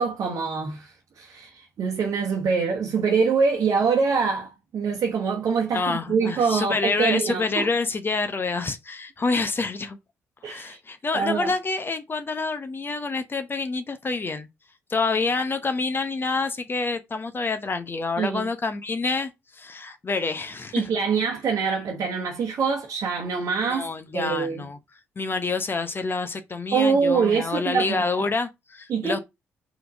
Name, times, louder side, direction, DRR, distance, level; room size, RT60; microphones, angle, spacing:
voice 1, 0.0-7.7 10.4-10.8 11.1-11.5 18.2-18.5 20.7-23.9 24.1-24.7 26.7-28.3 28.9-29.2, right 5 dB, 50° right, 1.1 m, -24 dB
voice 2, 5.7-10.0 10.4-14.5 14.9-20.9 23.7-24.8 25.2-29.2, left 3 dB, 30° left, 0.9 m, -27 dB
4.6 x 4.1 x 5.1 m
figure-of-eight pair, 40°, 7 cm